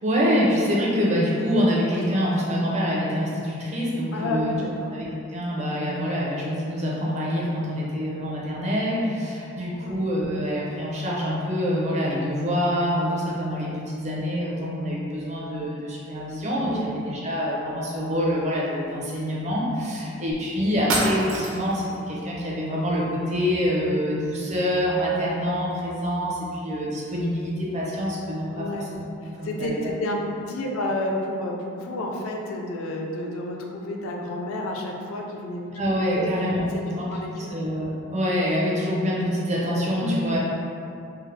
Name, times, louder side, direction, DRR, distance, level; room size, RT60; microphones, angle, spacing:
voice 1, 0.0-4.6 4.9-29.1 29.4-29.8 35.7-40.4, equal, 30° right, -5 dB, 0.5 m, -26 dB
voice 2, 4.1-4.9 9.6-9.9 16.7-16.9 28.5-28.9 29.2-30.2 30.5-35.8 36.1-36.3 36.7-37.5 40.0-40.2, left 1 dB, 75° left, 0 dB, 0.4 m, -30 dB
sound 1, 20.3-20.4 20.9-21.8, right 2 dB, 85° right, 0.5 m, -26 dB
3.3 x 2.1 x 3.2 m, 2.6 s
head